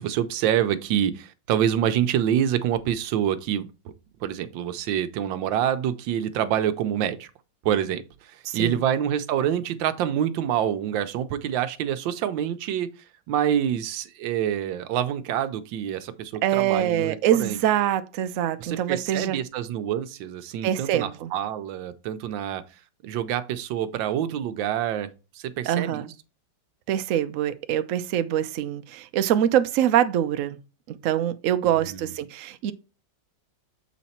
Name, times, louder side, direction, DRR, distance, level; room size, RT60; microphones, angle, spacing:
voice 1, 0.0-3.7 4.2-7.3 7.6-12.9 13.3-17.6 18.6-22.6 23.0-25.1 25.3-26.1 31.8-32.0, right 10 dB, 90° right, 1.4 m, -26 dB
voice 2, 8.4-8.8 16.4-19.4 20.6-21.3 25.7-26.1 26.9-30.6 30.9-32.7, right 11 dB, 70° right, 0.8 m, -24 dB
7.2 x 4.2 x 4.2 m
omnidirectional pair, 2.0 m